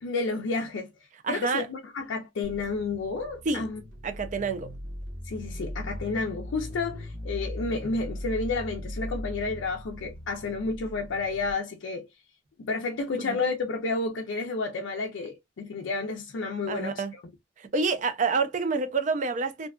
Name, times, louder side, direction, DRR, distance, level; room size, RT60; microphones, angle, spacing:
voice 1, 0.0-0.9 1.3-3.8 5.2-12.1 12.6-17.0, left 3 dB, 80° left, 0.4 m, -31 dB
voice 2, 1.2-1.7 3.5-3.7 4.0-4.7 13.2-13.4 16.7-17.1 17.6-19.7, right 4 dB, 40° right, 0.4 m, -28 dB
sound 1, 2.4-11.5, equal, 70° right, 1.0 m, -39 dB
2.6 x 2.2 x 2.3 m
head